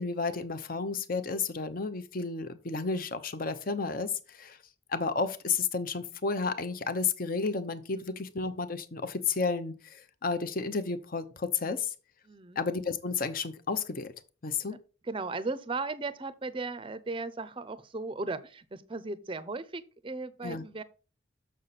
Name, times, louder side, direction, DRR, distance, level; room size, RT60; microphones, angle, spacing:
voice 1, 0.0-4.6 4.9-11.9 12.6-14.1 14.4-14.8 20.4-20.6, left 4 dB, 45° left, 0.7 m, -32 dB
voice 2, 12.2-12.6 14.6-14.8 15.0-20.8, right 3 dB, 25° right, 0.5 m, -36 dB
6.7 x 6.4 x 4.1 m
head